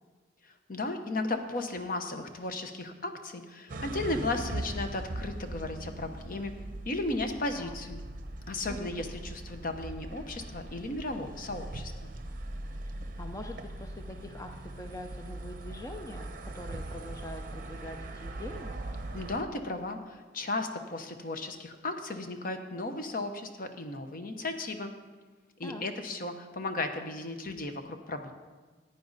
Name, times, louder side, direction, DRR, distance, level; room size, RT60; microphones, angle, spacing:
voice 1, 0.7-6.5 6.8-8.0 8.5-12.1 19.1-24.9 25.6-28.3, left 2 dB, 50° left, 7 dB, 0.9 m, -35 dB
sound 1, 3.7-19.4, right 1 dB, 50° right, 0.8 m, -40 dB
voice 2, 8.7-9.1 13.2-14.5 14.8-18.7 25.6-25.8, left 1 dB, 20° left, 5 dB, 0.5 m, -43 dB
15.0 x 9.4 x 4.0 m, 1.3 s
head